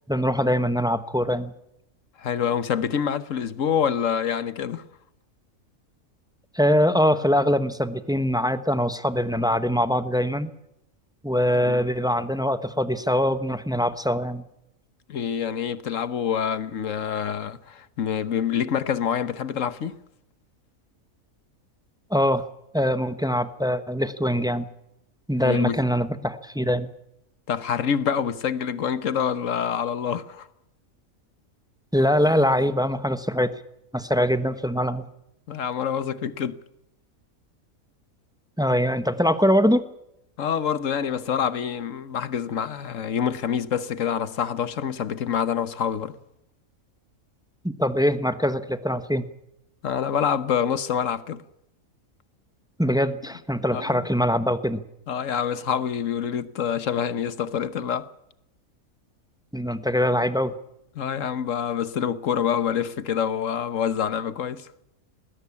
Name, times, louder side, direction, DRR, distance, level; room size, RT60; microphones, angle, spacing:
voice 1, 0.1-1.5 6.5-10.5 11.2-14.4 22.1-22.4 22.7-24.7 25.3-26.9 31.9-33.6 33.9-35.0 38.6-39.8 47.6-49.3 52.8-54.8 59.5-60.5, equal, 5° right, 0.8 m, -23 dB
voice 2, 2.2-4.8 11.7-11.8 15.1-20.0 25.4-25.8 27.5-30.5 35.5-36.6 40.4-46.1 49.8-51.4 53.7-54.1 55.1-58.1 60.9-64.7, left 8 dB, 65° left, 1.4 m, -26 dB
20.0 x 17.5 x 8.5 m
omnidirectional pair, 1.5 m